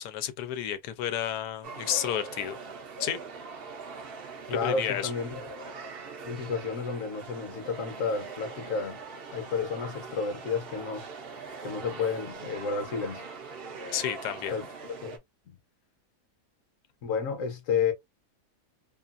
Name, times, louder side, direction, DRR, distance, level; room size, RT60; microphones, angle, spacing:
voice 1, 0.0-2.6 3.0-3.2 4.5-5.1 13.9-14.5, left 10 dB, 90° left, 1.2 m, -31 dB
sound 1, 1.6-15.2, right 4 dB, 60° right, 0.6 m, -42 dB
voice 2, 4.5-5.4 6.2-9.0 9.3-11.1 11.6-13.3 14.5-14.7 15.0-15.2 15.5-15.6 17.0-17.9, left 5 dB, 60° left, 1.1 m, -31 dB
2.9 x 2.4 x 2.4 m
omnidirectional pair, 1.7 m